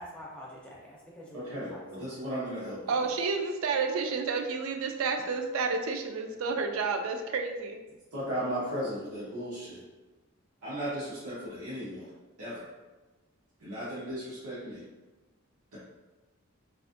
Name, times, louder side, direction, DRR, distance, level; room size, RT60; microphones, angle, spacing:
voice 1, 0.0-2.1, equal, 5° left, -5 dB, 0.4 m, -46 dB
voice 2, 1.3-3.1 8.1-9.8 10.6-12.1 12.4-12.7 13.6-14.8, equal, 90° right, -9 dB, 0.7 m, -36 dB
voice 3, 2.9-7.8, right 4 dB, 70° right, 5 dB, 0.3 m, -30 dB
2.4 x 2.3 x 2.5 m, 1.2 s
head